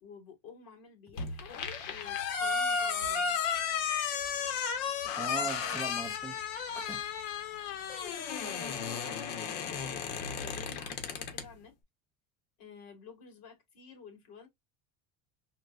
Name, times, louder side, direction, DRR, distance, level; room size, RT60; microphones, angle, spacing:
voice 1, 0.0-1.5 1.9-3.4 4.9-5.8 8.4-11.7 12.6-14.5, left 6 dB, 55° left, 2.2 m, -52 dB
sound 1, 1.2-11.5, left 6 dB, 75° left, 1.3 m, -34 dB
voice 2, 5.2-7.0 7.6-7.7, right 3 dB, ahead, 0.4 m, -41 dB
4.3 x 2.1 x 2.4 m
cardioid pair, 165°, 42 cm